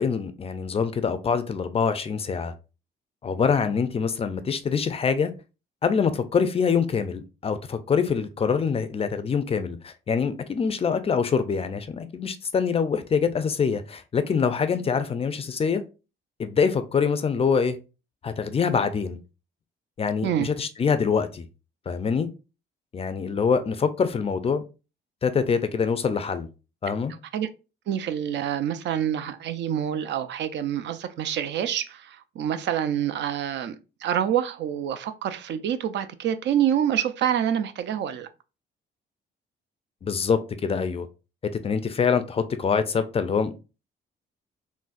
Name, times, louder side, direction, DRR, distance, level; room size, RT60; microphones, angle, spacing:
voice 1, 0.0-2.5 3.2-5.3 5.8-15.8 16.4-17.8 18.2-19.2 20.0-21.4 21.9-22.3 22.9-24.6 25.2-26.5 26.8-27.1 40.0-41.1 41.6-43.6, left 6 dB, 30° left, 0.4 m, -25 dB
voice 2, 27.9-33.8 34.0-38.3, right 10 dB, 65° right, 0.4 m, -27 dB
3.8 x 2.0 x 2.4 m
cardioid pair, 90°, 20 cm